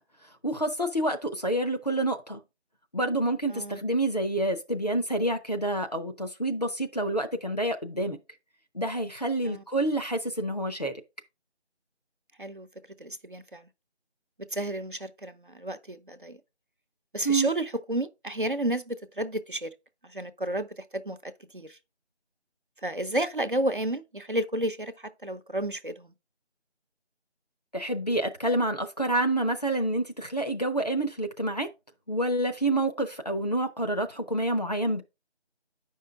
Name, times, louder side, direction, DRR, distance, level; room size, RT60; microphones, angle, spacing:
voice 1, 0.4-2.4 2.9-8.2 8.7-11.0 17.2-17.5 27.7-31.7 32.1-35.0, right 1 dB, 40° left, 0.8 m, -28 dB
voice 2, 3.5-3.8 9.4-9.6 12.4-12.7 13.0-13.6 14.5-16.4 17.1-19.7 20.1-21.8 22.8-26.1, right 1 dB, 50° right, 0.7 m, -31 dB
8.6 x 5.5 x 3.5 m
figure-of-eight pair, 170°, 33 cm